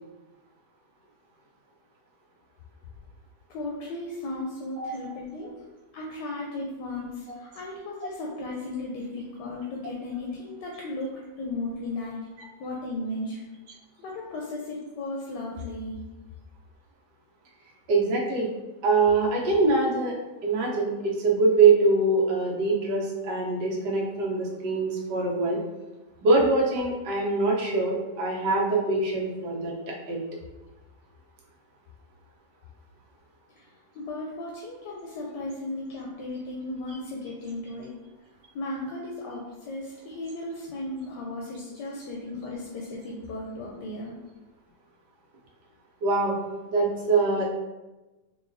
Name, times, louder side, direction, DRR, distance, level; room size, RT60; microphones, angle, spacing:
voice 1, 3.5-5.5 5.9-11.1 11.4-12.2 12.6-13.4 14.0-16.0 34.0-37.9 38.5-44.1, left 2 dB, 85° left, -2 dB, 1.2 m, -35 dB
voice 2, 17.9-18.5 18.8-20.2 20.4-25.6 26.2-30.2 46.0-46.3 46.7-47.4, right 3 dB, 80° right, -3 dB, 1.4 m, -23 dB
3.8 x 3.2 x 2.6 m, 1.1 s
omnidirectional pair, 1.8 m